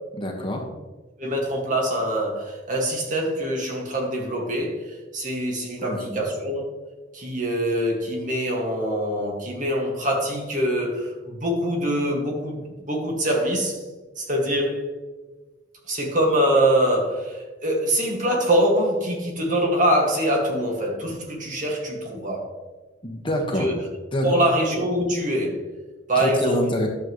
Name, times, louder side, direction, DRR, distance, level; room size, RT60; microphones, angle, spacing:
voice 1, 0.1-0.6 5.8-6.2 23.0-23.7 24.1-24.4 26.1-26.9, equal, 25° left, 1 dB, 1.4 m, -26 dB
voice 2, 1.2-6.7 7.1-13.8 14.2-14.8 15.9-22.5 23.6-23.8 24.2-25.6 26.1-26.6, right 1 dB, 40° right, -1 dB, 1.9 m, -24 dB
11.5 x 7.5 x 3.1 m, 1.3 s
head